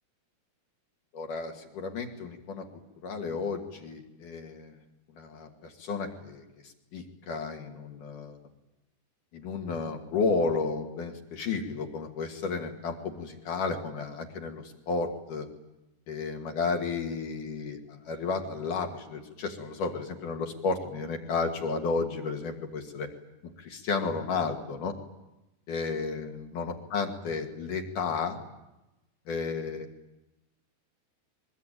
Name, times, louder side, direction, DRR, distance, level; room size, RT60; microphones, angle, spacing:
voice 1, 1.1-2.6 3.0-4.7 5.1-8.4 9.3-15.5 16.1-23.1 23.4-24.9 25.7-28.4 29.3-29.9, left 4 dB, 75° left, 2 dB, 3.9 m, -32 dB
23.0 x 22.5 x 9.1 m, 0.97 s
omnidirectional pair, 3.7 m